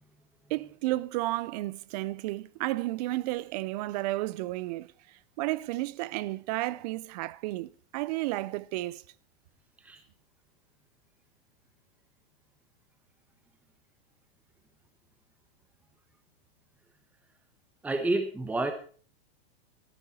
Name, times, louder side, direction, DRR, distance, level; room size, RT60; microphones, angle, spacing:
voice 1, 0.5-4.9 5.4-9.0, right 18 dB, 40° right, 0.5 m, -32 dB
voice 2, 17.8-18.7, right 2 dB, 5° right, 1.1 m, -29 dB
14.0 x 11.5 x 4.2 m
supercardioid pair, 145°, 31 cm